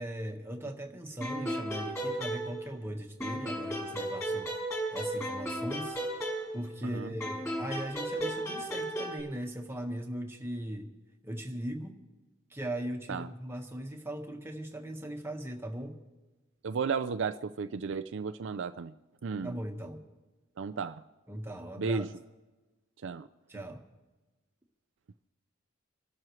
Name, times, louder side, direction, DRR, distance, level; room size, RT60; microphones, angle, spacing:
voice 1, 0.0-4.5 4.9-6.0 6.5-10.9 11.2-11.9 12.5-16.0 19.4-20.0 21.3-22.1 23.5-23.8, right 1 dB, 10° right, 2 dB, 1.5 m, -39 dB
sound 1, 1.2-2.9 3.2-6.8 7.2-9.2, right 1 dB, 15° left, 6.3 m, -35 dB
voice 2, 16.6-18.9 19.2-19.5 20.6-21.0 21.8-22.1 23.0-23.3, right 5 dB, 65° right, 11 dB, 0.4 m, -33 dB
27.0 x 12.5 x 3.2 m, 1.2 s
head